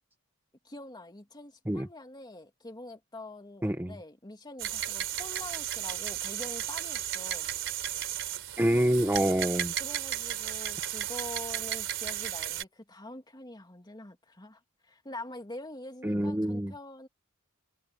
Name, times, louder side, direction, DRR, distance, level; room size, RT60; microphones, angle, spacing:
voice 1, 0.6-7.5 9.8-17.1, left 2 dB, 20° left, 2.6 m, -45 dB
voice 2, 3.6-4.0 8.6-9.7 16.0-16.7, right 1 dB, 10° right, 0.8 m, -26 dB
sound 1, 4.6-12.6, right 11 dB, 60° right, 3.8 m, -34 dB
head